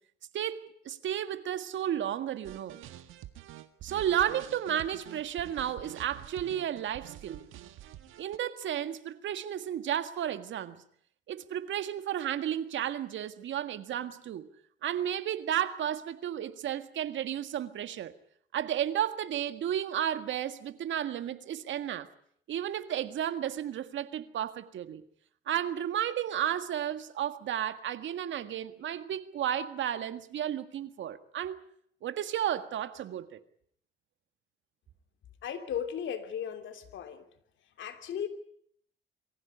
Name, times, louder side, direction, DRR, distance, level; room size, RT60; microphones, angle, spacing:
voice 1, 0.3-2.8 3.8-7.4 8.2-10.8 11.3-14.5 14.8-18.1 18.5-22.1 22.5-25.0 25.5-31.7 32.0-33.4, right 10 dB, 70° right, 1.8 m, -33 dB
sound 1, 2.4-8.4, right 13 dB, 90° right, 1.7 m, -47 dB
voice 2, 35.4-37.2 37.8-38.3, left 8 dB, 70° left, 3.1 m, -36 dB
23.5 x 15.5 x 9.8 m
cardioid pair, 90°, 20 cm